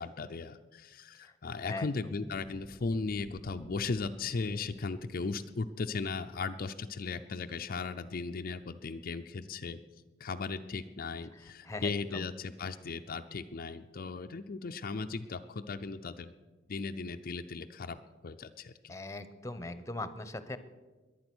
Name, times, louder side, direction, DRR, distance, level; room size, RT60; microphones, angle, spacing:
voice 1, 0.0-9.8 10.2-16.3 16.7-18.9, left 4 dB, 50° left, 7 dB, 0.5 m, -37 dB
sound 1, 2.3-7.2, equal, 30° right, 3.3 m, -55 dB
voice 2, 11.6-12.3 18.9-20.6, left 2 dB, 15° left, 12 dB, 0.9 m, -40 dB
22.0 x 8.8 x 6.2 m, 1.3 s
head